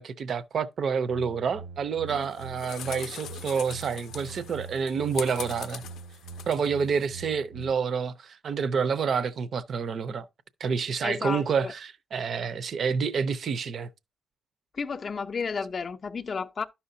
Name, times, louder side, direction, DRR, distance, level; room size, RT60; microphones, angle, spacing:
voice 1, 0.0-5.8 6.5-10.3 10.6-13.9, right 6 dB, 45° right, 0.5 m, -28 dB
sound 1, 1.1-7.7, right 4 dB, 85° right, 1.3 m, -44 dB
sound 2, 2.1-7.1, left 10 dB, 85° left, 0.5 m, -42 dB
voice 2, 11.0-11.7 14.7-16.6, left 5 dB, 30° left, 0.5 m, -32 dB
12.0 x 5.6 x 2.6 m
wide cardioid pair, 175°, 0 cm